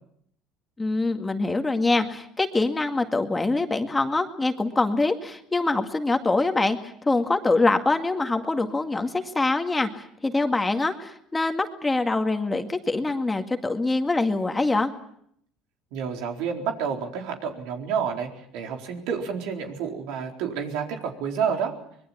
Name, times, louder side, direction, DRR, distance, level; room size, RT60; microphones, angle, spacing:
voice 1, 0.8-14.9, left 3 dB, 15° left, 6 dB, 2.0 m, -24 dB
voice 2, 15.9-21.7, right 7 dB, 80° right, 3 dB, 4.3 m, -29 dB
25.0 x 21.5 x 7.4 m, 0.69 s
cardioid pair, 115°, 0 cm